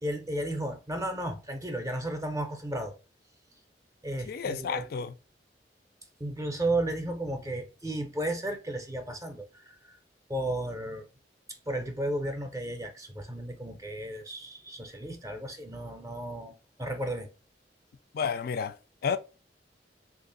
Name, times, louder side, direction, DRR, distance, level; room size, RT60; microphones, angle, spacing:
voice 1, 0.0-2.9 4.0-4.9 6.2-10.0 10.3-11.0 11.7-17.3, right 1 dB, 20° right, 0.5 m, -34 dB
voice 2, 4.3-5.2 18.1-19.2, left 6 dB, 55° left, 0.3 m, -31 dB
3.2 x 2.4 x 3.8 m
head